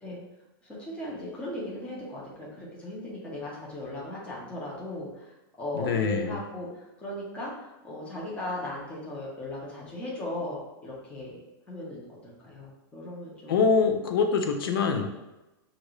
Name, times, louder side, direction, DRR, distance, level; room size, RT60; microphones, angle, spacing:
voice 1, 0.6-11.4 11.7-13.6, left 1 dB, 10° left, -6 dB, 1.0 m, -37 dB
voice 2, 5.7-6.4 13.5-15.1, left 5 dB, 75° left, 5 dB, 0.6 m, -24 dB
6.1 x 2.6 x 3.1 m, 1.0 s
supercardioid pair, 155°, 12 cm